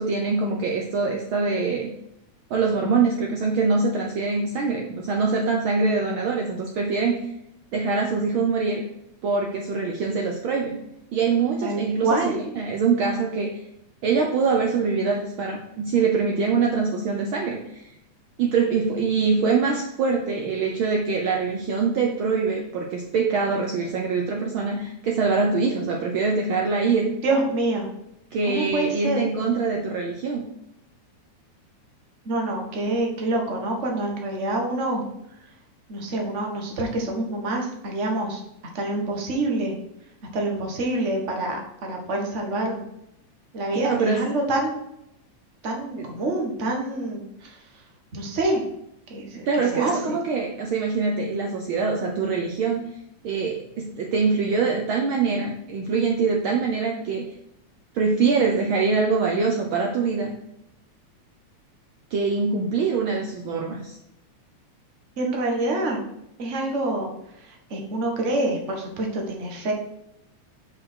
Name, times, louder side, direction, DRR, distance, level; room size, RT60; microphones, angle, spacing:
voice 1, 0.0-1.9 2.5-7.3 7.7-8.8 9.2-10.8 11.1-13.6 14.0-17.9 18.4-27.1 28.3-30.4 43.8-44.2 46.0-46.1 49.4-52.9 53.2-57.3 57.9-60.3 62.1-64.0, right 4 dB, 75° right, 1 dB, 1.2 m, -24 dB
voice 2, 11.6-12.4 27.2-27.9 28.5-29.2 32.2-35.0 35.9-38.4 38.7-39.7 40.3-42.9 43.5-44.8 45.6-47.6 48.1-48.6 49.1-49.4 49.7-50.0 65.2-66.0 66.4-67.1 67.4-69.7, right 2 dB, 35° right, 1 dB, 1.2 m, -26 dB
6.3 x 5.1 x 6.3 m, 0.82 s
omnidirectional pair, 3.4 m